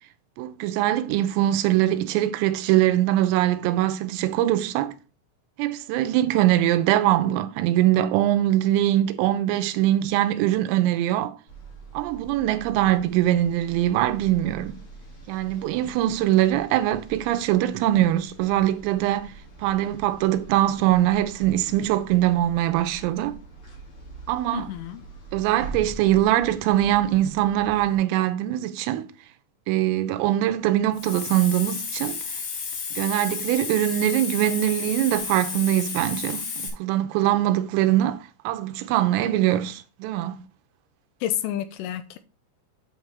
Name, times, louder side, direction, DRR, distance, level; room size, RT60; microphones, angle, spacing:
voice 1, 0.4-4.9 5.6-11.4 12.0-14.8 15.3-19.3 19.6-23.4 24.3-24.7 25.3-29.0 29.7-32.2 33.0-40.4, right 13 dB, 85° right, 3.5 m, -22 dB
sound 1, 11.5-28.0, right 3 dB, 35° left, 2.2 m, -44 dB
voice 2, 24.5-25.0 41.2-42.2, left 12 dB, 80° left, 3.1 m, -29 dB
Hiss, 30.9-36.7, left 5 dB, 60° left, 4.2 m, -32 dB
9.0 x 7.2 x 3.4 m
omnidirectional pair, 5.8 m